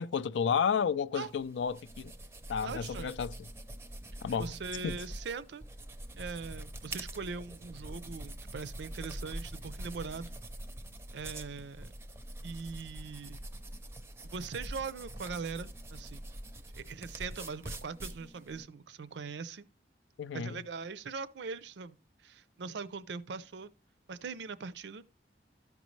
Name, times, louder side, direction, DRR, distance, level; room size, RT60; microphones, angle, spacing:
voice 1, 0.0-2.1 2.5-3.3 4.2-4.5 4.8-4.9 20.2-20.6, left 6 dB, 85° left, 0.4 m, -31 dB
sound 1, 1.1-18.6, right 1 dB, 15° right, 0.5 m, -45 dB
voice 2, 2.6-3.1 4.4-5.6 6.2-10.3 11.1-11.9 12.4-13.4 14.2-16.2 16.8-19.7 20.3-23.7 24.1-25.1, right 5 dB, 75° right, 0.5 m, -41 dB
13.0 x 5.2 x 3.1 m
head